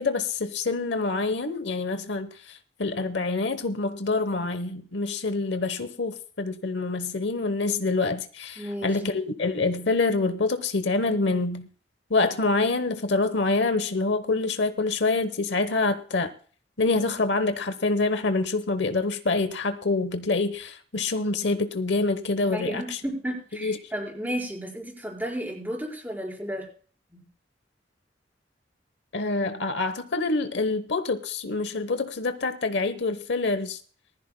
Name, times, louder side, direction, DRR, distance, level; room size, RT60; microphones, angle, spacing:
voice 1, 0.0-11.7 12.1-16.3 16.8-23.0 23.6-23.8 29.1-33.8, left 3 dB, 70° left, 1.0 m, -26 dB
voice 2, 8.6-8.9 22.4-26.7 27.1-27.2, equal, 10° right, 4.9 m, -33 dB
20.0 x 14.0 x 2.2 m
head